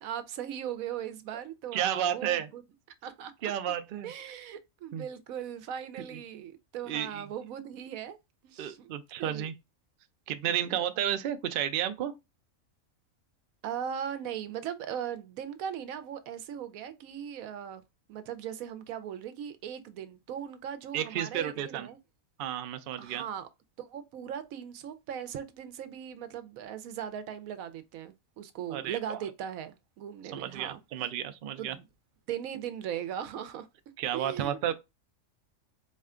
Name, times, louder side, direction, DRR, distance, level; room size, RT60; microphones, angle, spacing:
voice 1, 0.0-2.6 3.0-3.5 4.0-8.2 8.4-8.9 9.2-9.5 10.4-10.8 13.6-17.8 18.1-22.0 23.0-23.5 23.8-30.8 31.6-31.9 32.3-33.7 34.1-34.7, right 9 dB, 90° right, 1.0 m, -39 dB
voice 2, 1.7-2.5 3.4-4.1 4.9-5.1 6.0-6.2 6.9-7.3 8.6-9.5 10.3-12.1 20.9-21.9 22.4-23.2 28.7-29.2 30.3-31.8 34.0-34.7, right 10 dB, 70° right, 0.5 m, -32 dB
4.1 x 2.2 x 3.6 m
omnidirectional pair, 1.4 m